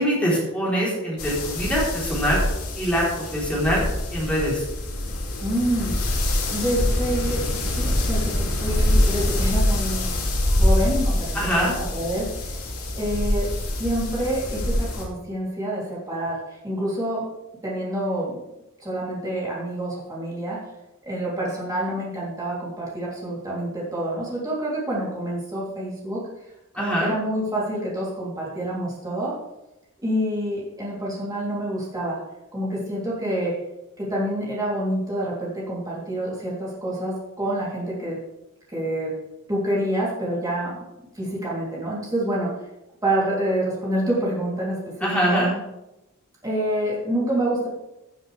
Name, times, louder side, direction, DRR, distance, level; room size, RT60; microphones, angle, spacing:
voice 1, 0.0-2.4 2.7-3.8 4.1-4.6 11.3-11.7 26.7-27.1 45.0-45.6, equal, 5° left, -6 dB, 3.8 m, -23 dB
sound 1, 1.2-15.0, left 1 dB, 85° left, 2.7 m, -25 dB
voice 2, 5.4-6.1 6.5-10.1 10.5-12.6 13.0-13.5 13.8-17.3 17.6-18.4 18.8-20.6 21.0-26.2 26.7-29.4 30.0-32.2 32.5-33.5 34.0-38.2 38.7-39.1 39.5-40.8 41.1-42.5 43.0-44.9 45.3-45.5 46.4-47.7, right 1 dB, 15° right, -6 dB, 3.3 m, -27 dB
16.0 x 7.6 x 3.4 m, 0.93 s
head